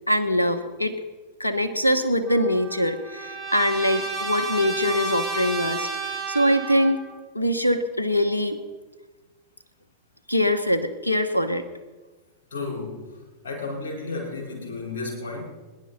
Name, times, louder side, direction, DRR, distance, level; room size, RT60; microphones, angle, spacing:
voice 1, 0.1-0.9 1.4-7.1 7.3-8.6 10.3-11.6, equal, 85° left, 12 dB, 1.1 m, -23 dB
Trumpet, 2.3-7.1, right 3 dB, 5° left, 4.3 m, -32 dB
voice 2, 12.5-13.2 13.4-15.4, left 3 dB, 60° left, 0 dB, 4.6 m, -32 dB
24.0 x 11.0 x 4.1 m, 1.3 s
figure-of-eight pair, 90°, 0 cm